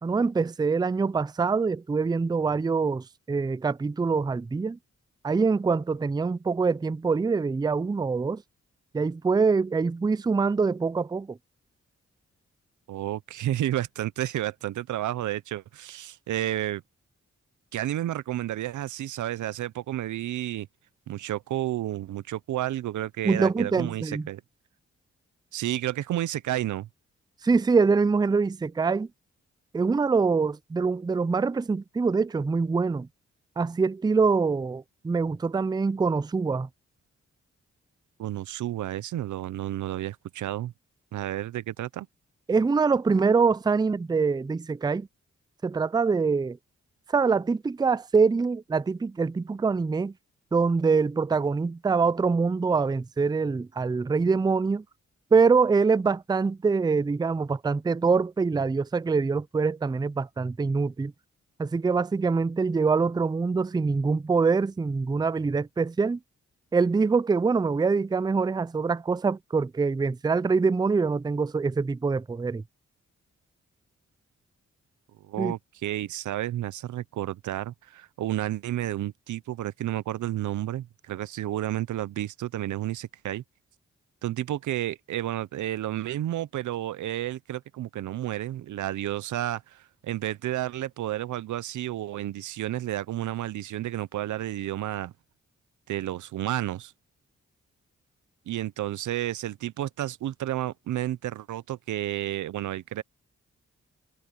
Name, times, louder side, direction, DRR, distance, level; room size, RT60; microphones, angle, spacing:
voice 1, 0.0-4.8 5.2-8.4 8.9-11.4 23.2-24.3 27.4-29.1 29.7-33.1 33.6-36.7 42.5-45.1 45.6-46.6 47.1-50.1 50.5-54.8 55.3-61.1 61.6-66.2 66.7-72.6 75.4-75.5, right 4 dB, 15° right, 0.4 m, -24 dB
voice 2, 12.9-16.8 17.7-20.7 21.1-24.4 25.5-26.9 38.2-40.7 41.1-42.1 75.2-83.4 84.2-95.1 95.9-96.9 98.5-103.0, right 13 dB, 90° right, 0.7 m, -31 dB
cardioid pair, 55°, 29 cm